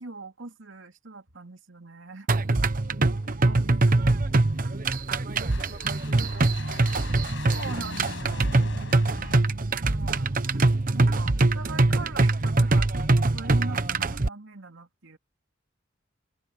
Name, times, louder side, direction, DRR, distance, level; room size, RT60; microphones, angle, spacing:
voice 1, 0.0-2.3 3.4-4.2 7.4-8.5 9.9-10.3 10.9-15.2, right 3 dB, 90° right, 2.6 m, -41 dB
sound 1, 2.3-14.3, right 2 dB, 45° right, 1.0 m, -23 dB
voice 2, 2.9-4.4 4.9-5.3 5.6-6.9, left 1 dB, 40° left, 6.2 m, -59 dB
sound 2, 3.1-9.4, left 3 dB, 75° left, 6.1 m, -43 dB
head